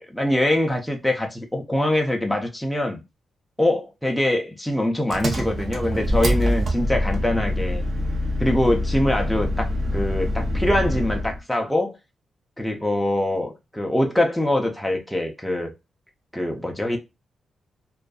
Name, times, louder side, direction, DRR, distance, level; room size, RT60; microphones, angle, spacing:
voice 1, 0.1-3.0 3.6-7.8 8.4-9.7 9.9-12.0 12.6-15.7 16.3-17.0, left 1 dB, ahead, 0.4 m, -23 dB
Engine, 5.1-11.4, left 1 dB, 45° right, 0.7 m, -25 dB
2.5 x 2.3 x 2.2 m
cardioid pair, 115°, 0 cm